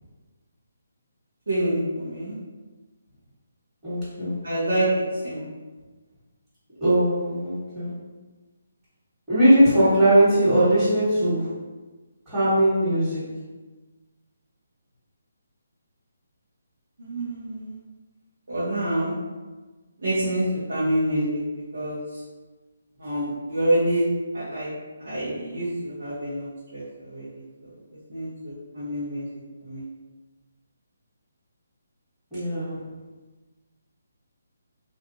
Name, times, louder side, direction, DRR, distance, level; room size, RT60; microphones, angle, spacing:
voice 1, 1.5-2.3 4.4-4.9 5.2-5.4 17.0-17.7 18.5-19.1 20.0-21.4 21.7-22.0 23.0-24.0 24.3-24.7 25.0-27.3 28.1-29.2 29.6-29.8, right 1 dB, 90° right, -10 dB, 1.1 m, -27 dB
voice 2, 3.8-4.4 6.8-7.9 9.3-11.5 12.3-13.4 32.3-32.8, right 1 dB, 10° right, -18 dB, 1.4 m, -20 dB
3.2 x 2.4 x 2.7 m, 1.3 s
hypercardioid pair, 160°, 0 cm